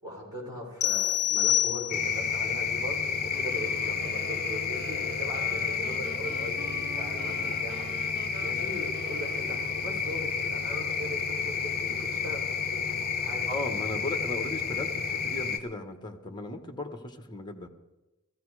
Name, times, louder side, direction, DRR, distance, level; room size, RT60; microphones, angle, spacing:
voice 1, 0.0-7.9 8.4-13.5, equal, 20° right, -4 dB, 5.9 m, -39 dB
sound 1, 0.8-2.3, left 12 dB, 85° left, 0.4 m, -26 dB
sound 2, 1.9-15.6, left 6 dB, 45° left, 1.2 m, -31 dB
Wind instrument woodwind instrument, 3.3-10.3, right 2 dB, 45° right, 0.9 m, -45 dB
voice 2, 13.5-17.7, left 2 dB, 20° left, 6 dB, 1.4 m, -36 dB
16.0 x 15.0 x 4.9 m, 1.0 s
head